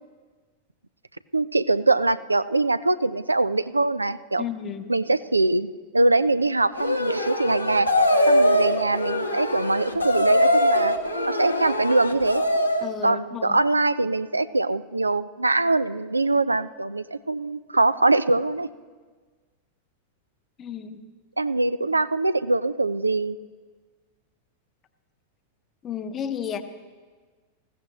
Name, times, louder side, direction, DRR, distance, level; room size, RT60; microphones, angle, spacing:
voice 1, 1.3-4.5 4.9-5.7 5.9-7.9 8.3-11.0 11.3-12.4 13.0-18.7 21.4-23.4, right 2 dB, 80° right, 14 dB, 0.4 m, -23 dB
voice 2, 4.4-4.9 12.8-13.6 20.6-21.0 25.8-26.6, left 8 dB, 30° left, 9 dB, 0.9 m, -32 dB
sound 1, 6.8-12.9, left 1 dB, 85° left, 1.0 m, -22 dB
19.5 x 15.0 x 3.0 m, 1.4 s
figure-of-eight pair, 90°, 0 cm